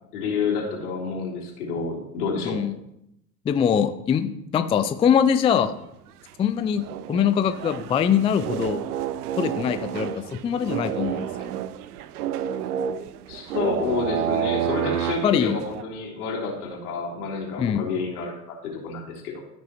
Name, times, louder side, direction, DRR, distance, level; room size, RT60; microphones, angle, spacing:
voice 1, 0.1-2.6 13.3-19.4, left 4 dB, 70° left, -2 dB, 3.4 m, -29 dB
voice 2, 2.4-2.8 3.5-5.7 6.4-8.8 9.4-10.1 10.4-11.5 15.2-15.6 17.6-17.8, left 8 dB, 15° left, 10 dB, 0.3 m, -22 dB
sound 1, 5.4-5.8 6.3-6.4 6.5-15.8, right 10 dB, 75° right, 0.6 m, -30 dB
14.5 x 6.1 x 2.9 m, 0.80 s
hypercardioid pair, 75°, 46 cm